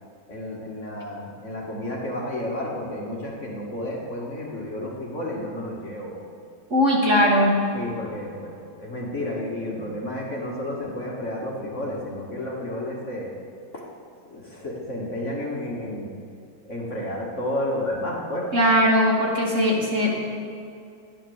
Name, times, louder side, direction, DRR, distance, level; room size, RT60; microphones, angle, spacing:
voice 1, 0.3-6.2 7.7-13.3 13.7-13.8 14.3-16.1 16.6-18.5, left 1 dB, 35° left, -3 dB, 2.0 m, -31 dB
voice 2, 6.7-7.6 18.5-20.1, equal, 35° right, -2 dB, 2.2 m, -19 dB
13.0 x 10.5 x 7.1 m, 2.4 s
omnidirectional pair, 2.2 m